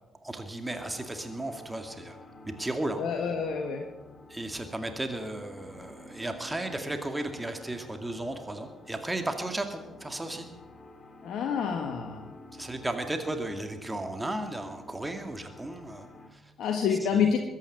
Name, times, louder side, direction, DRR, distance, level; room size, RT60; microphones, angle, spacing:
voice 1, 0.2-2.2 2.5-3.0 4.3-10.5 12.5-16.5 17.1-17.3, right 1 dB, 15° right, 6 dB, 2.1 m, -35 dB
sound 1, 0.7-16.3, left 2 dB, 30° left, 3.1 m, -50 dB
voice 2, 2.9-3.8 11.2-12.3 16.6-17.4, left 7 dB, 60° left, 3 dB, 1.5 m, -28 dB
21.5 x 9.5 x 6.7 m, 1.1 s
figure-of-eight pair, 45°, 0 cm